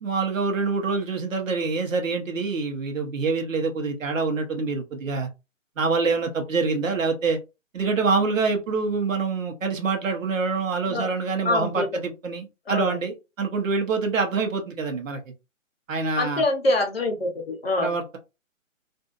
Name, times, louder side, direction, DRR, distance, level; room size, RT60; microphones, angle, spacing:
voice 1, 0.0-5.3 5.8-7.4 7.7-15.2 15.9-16.4 17.8-18.2, right 4 dB, 70° right, 1.0 m, -26 dB
voice 2, 11.4-11.9 12.7-13.0 16.2-18.0, left 2 dB, 45° left, 0.9 m, -25 dB
2.6 x 2.6 x 2.4 m
hypercardioid pair, 180°, 40 cm